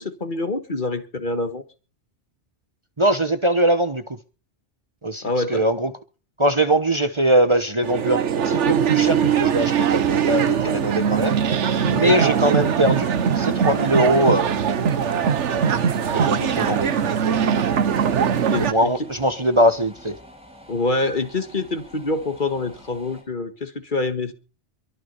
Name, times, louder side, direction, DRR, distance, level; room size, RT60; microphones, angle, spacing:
voice 1, 0.0-1.6 5.2-5.6 11.9-12.0 18.5-19.1 20.7-24.3, left 2 dB, 45° left, 1.7 m, -26 dB
voice 2, 3.0-4.2 5.0-5.9 6.4-11.3 11.8-13.1 13.3-14.5 16.1-17.6 18.6-20.2, right 1 dB, 25° right, 1.1 m, -21 dB
sound 1, 7.8-18.7, right 8 dB, 80° right, 1.3 m, -21 dB
sound 2, 10.5-23.2, equal, 5° right, 6.5 m, -47 dB
sound 3, 14.4-20.0, right 1 dB, 75° left, 6.9 m, -42 dB
23.0 x 9.9 x 5.5 m
omnidirectional pair, 1.2 m